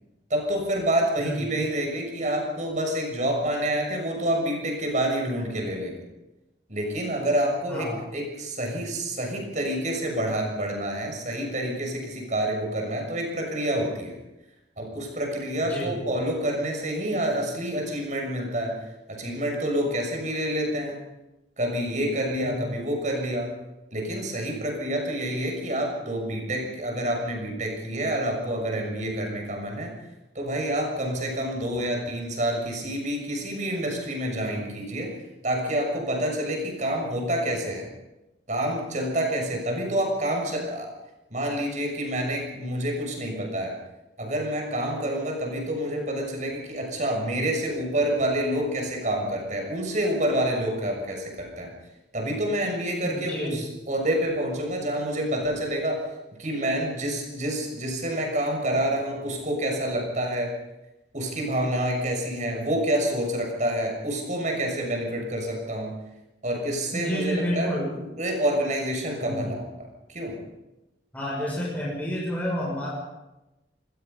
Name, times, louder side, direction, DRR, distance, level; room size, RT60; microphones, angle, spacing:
voice 1, 0.3-6.0 6.7-14.2 14.8-18.8 19.1-21.0 21.6-23.5 23.9-29.9 30.3-35.2 35.4-37.9 38.5-40.9 41.3-43.7 44.2-51.7 52.1-56.0 56.4-60.5 61.1-65.9 66.4-69.7 70.1-70.3, right 1 dB, 45° right, 2 dB, 6.5 m, -28 dB
voice 2, 7.7-8.0 15.7-16.0 22.4-22.7 53.0-53.6 66.9-67.9 69.2-69.5 71.1-72.9, equal, 10° left, -5 dB, 6.3 m, -29 dB
25.0 x 21.0 x 5.5 m, 0.98 s
head